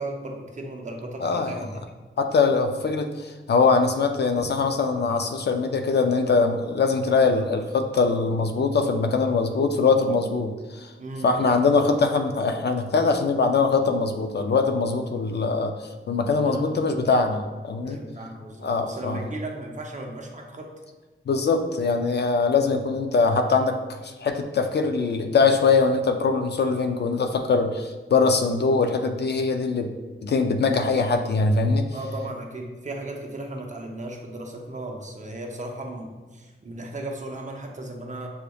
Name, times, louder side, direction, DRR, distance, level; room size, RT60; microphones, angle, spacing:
voice 1, 0.0-1.8 11.0-11.6 16.2-17.1 17.8-20.7 31.9-38.3, right 2 dB, 35° right, 1 dB, 0.7 m, -36 dB
voice 2, 1.2-1.7 2.2-10.9 11.2-18.0 18.6-19.2 21.3-29.9 30.2-31.9, left 4 dB, 55° left, 6 dB, 0.4 m, -22 dB
6.9 x 3.3 x 2.3 m, 1.3 s
wide cardioid pair, 115°, 21 cm